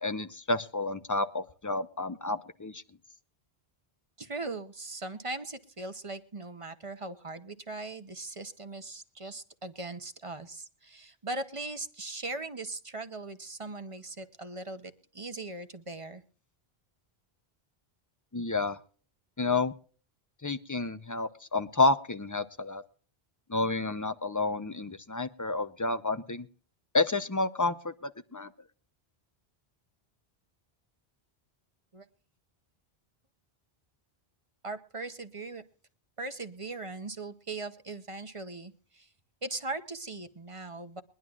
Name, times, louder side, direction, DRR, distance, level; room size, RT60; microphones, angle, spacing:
voice 1, 0.0-2.8 18.3-18.8 19.4-19.7 20.4-22.8 23.5-26.5 26.9-28.5, left 3 dB, 20° left, 11 dB, 0.5 m, -30 dB
voice 2, 4.2-16.2 31.9-32.1 34.6-35.6 36.2-39.1 39.4-41.0, right 2 dB, 35° right, 9 dB, 0.9 m, -39 dB
22.5 x 11.0 x 2.4 m, 0.42 s
omnidirectional pair, 1.1 m